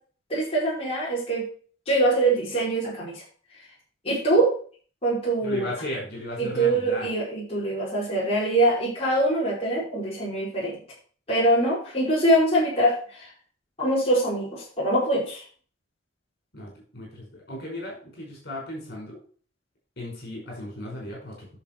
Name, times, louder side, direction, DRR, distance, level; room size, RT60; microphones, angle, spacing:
voice 1, 0.3-1.4 1.9-3.1 4.0-4.5 5.0-5.7 6.4-10.8 11.3-13.2 13.8-15.4, right 1 dB, 30° left, -7 dB, 5.0 m, -23 dB
voice 2, 5.4-7.1 16.5-19.2 20.0-21.5, left 1 dB, 55° left, -2 dB, 5.4 m, -36 dB
10.5 x 6.9 x 4.6 m, 0.44 s
head